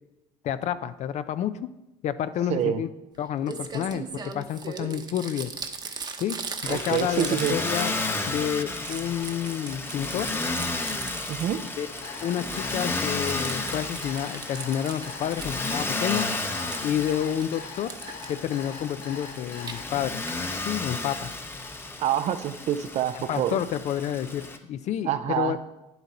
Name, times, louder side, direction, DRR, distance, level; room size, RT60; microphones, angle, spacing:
voice 1, 0.4-1.6 2.0-2.9 3.2-5.5 6.2-6.4 6.6-7.9 8.3-10.3 11.8-11.9 12.2-16.3 16.8-17.9 18.3-20.2 20.6-21.3 23.1-25.7, left 10 dB, 50° left, 12 dB, 0.5 m, -29 dB
voice 2, 2.5-2.8 6.7-7.6 11.3-11.6 22.0-23.5 25.0-25.6, right 10 dB, 50° right, 10 dB, 0.5 m, -26 dB
Crumpling crinkling, 3.1-3.2 3.5-8.4 8.6-11.7 12.0-15.6 15.9-17.4 17.9-18.3 19.4-19.7 20.3-20.4 20.6-20.7 20.9-21.0, right 5 dB, 30° right, 0.9 m, -39 dB
Motor vehicle (road), 6.6-24.6, left 2 dB, 15° left, 0.8 m, -33 dB
Alarm, 12.0-19.8, left 6 dB, 70° left, 2.4 m, -42 dB
10.0 x 7.9 x 4.2 m, 0.95 s
cardioid pair, 130°, 15 cm